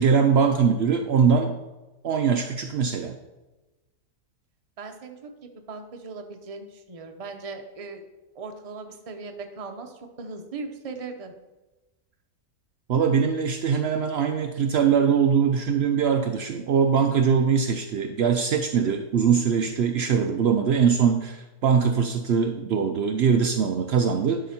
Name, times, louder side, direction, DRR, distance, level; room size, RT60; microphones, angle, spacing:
voice 1, 0.0-1.5 2.0-3.2 12.9-24.4, right 6 dB, 85° right, 5 dB, 0.5 m, -22 dB
voice 2, 4.8-5.3 5.7-8.0 8.3-11.3, right 4 dB, 35° right, 5 dB, 0.5 m, -38 dB
11.5 x 5.1 x 4.3 m, 1.1 s
omnidirectional pair, 1.7 m